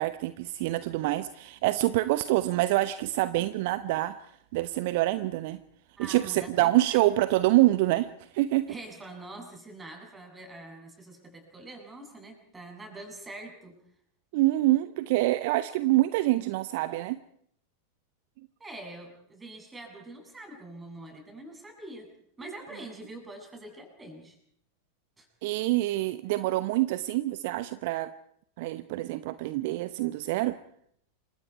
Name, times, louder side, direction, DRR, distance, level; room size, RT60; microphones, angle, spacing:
voice 1, 0.0-4.1 4.5-5.6 6.0-8.7 14.3-17.2 25.4-28.1 28.6-30.6, right 17 dB, 50° right, 14 dB, 0.9 m, -26 dB
voice 2, 6.0-7.0 8.7-13.7 18.6-22.1 22.4-24.4 25.2-25.3, right 2 dB, 15° right, 2 dB, 7.7 m, -44 dB
29.0 x 25.0 x 4.7 m, 0.69 s
figure-of-eight pair, 90°, 0 cm